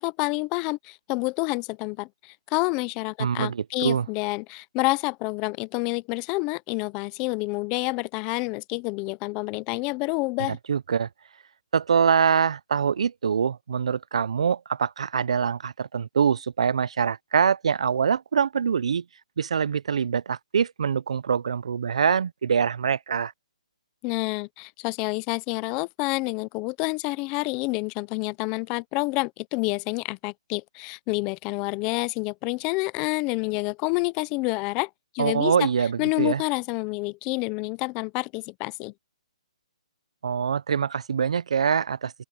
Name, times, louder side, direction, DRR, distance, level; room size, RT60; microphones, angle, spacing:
voice 1, 0.0-10.6 24.0-34.9 35.1-35.7 36.0-38.9, left 26 dB, 15° left, 0.4 m, -28 dB
voice 2, 3.2-4.1 10.7-11.1 11.7-19.0 19.4-23.3 35.2-36.4 40.2-42.1, right 7 dB, 60° right, 0.5 m, -24 dB
open air
hypercardioid pair, 170°, 4 cm